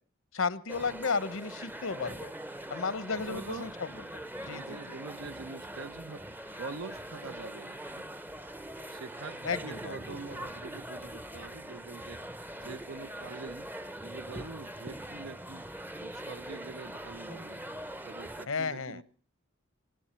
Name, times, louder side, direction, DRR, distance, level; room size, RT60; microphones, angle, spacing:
voice 1, 0.3-2.3 2.7-3.7 4.1-4.2 4.5-5.0 9.4-10.0 18.5-19.0, left 4 dB, 75° left, 16 dB, 1.0 m, -33 dB
sound 1, 0.7-18.5, right 1 dB, 10° right, 0.6 m, -42 dB
voice 2, 3.3-3.7 4.4-6.2 6.6-8.1 8.9-12.2 12.5-13.7 14.0-15.7 16.0-17.6 18.0-19.0, right 4 dB, 70° right, 10 dB, 0.7 m, -44 dB
18.5 x 17.0 x 4.4 m, 0.44 s
head